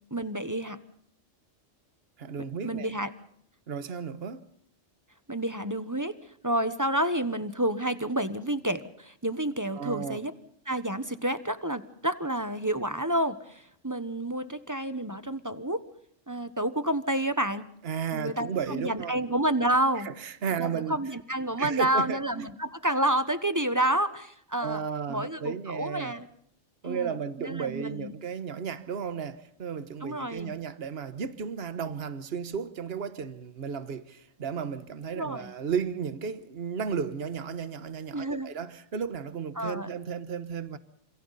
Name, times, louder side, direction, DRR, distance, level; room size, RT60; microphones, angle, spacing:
voice 1, 0.1-0.8 2.6-3.1 5.3-6.1 6.4-10.3 10.7-15.8 16.3-17.6 18.1-20.1 20.6-24.8 25.1-26.3 26.8-28.1 30.0-30.5 35.1-35.5 38.1-38.5 39.6-39.9, right 1 dB, 15° right, 1.1 m, -29 dB
voice 2, 2.2-2.9 3.7-4.4 9.7-10.2 17.8-19.2 20.0-21.0 21.6-22.5 24.6-26.1 26.8-40.8, right 6 dB, 50° right, 1.4 m, -34 dB
29.5 x 27.5 x 4.2 m
omnidirectional pair, 1.3 m